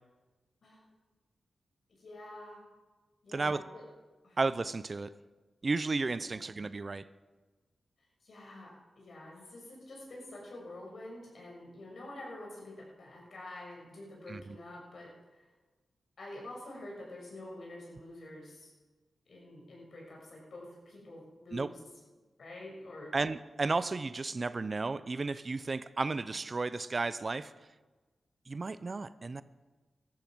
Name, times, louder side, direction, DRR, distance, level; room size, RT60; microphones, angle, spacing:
voice 1, 2.0-2.6 3.2-3.8 4.2-4.4 6.3-6.5 8.2-15.4 16.2-18.7 19.3-21.8 22.4-23.1, left 1 dB, 65° left, -2 dB, 6.4 m, -47 dB
voice 2, 3.3-3.6 4.4-5.1 5.6-7.0 14.3-14.6 21.5-21.7 23.1-27.5 28.5-29.4, right 3 dB, 45° right, 15 dB, 0.7 m, -33 dB
15.5 x 12.5 x 6.2 m, 1.3 s
cardioid pair, 50°, 0 cm